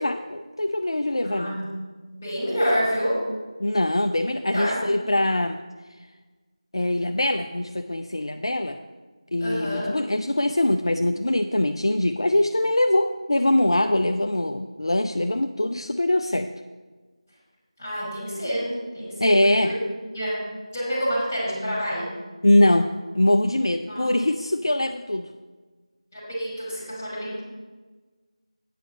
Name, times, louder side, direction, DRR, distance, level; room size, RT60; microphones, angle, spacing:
voice 1, 0.0-1.6 3.6-5.6 6.7-8.8 9.3-16.5 19.2-19.7 22.4-25.3, left 1 dB, 50° left, 7 dB, 0.4 m, -22 dB
voice 2, 1.2-1.7 2.2-3.2 4.5-4.8 9.4-9.9 17.8-20.5 20.7-22.2 23.9-24.1 26.1-27.4, equal, 15° left, -7 dB, 2.8 m, -28 dB
9.0 x 4.7 x 7.4 m, 1.3 s
figure-of-eight pair, 170°, 3 cm